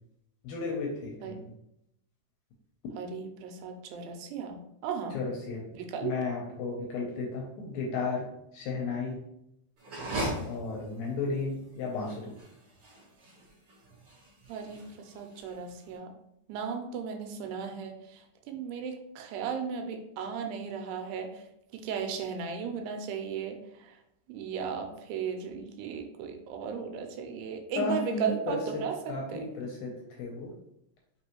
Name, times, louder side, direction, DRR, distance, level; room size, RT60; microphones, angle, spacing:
voice 1, 0.4-1.5 5.1-5.6 6.0-8.2 8.5-9.2 10.5-12.3 27.8-30.5, left 3 dB, 80° left, -1 dB, 2.2 m, -34 dB
voice 2, 3.0-5.2 5.7-6.1 14.5-16.1 16.5-17.9 18.5-21.3 21.7-23.6 24.3-28.9 29.3-29.4, right 6 dB, 85° right, 4 dB, 2.7 m, -35 dB
sound 1, 9.8-15.9, right 1 dB, 45° right, 1.9 m, -39 dB
6.0 x 3.0 x 2.9 m, 0.80 s
omnidirectional pair, 4.7 m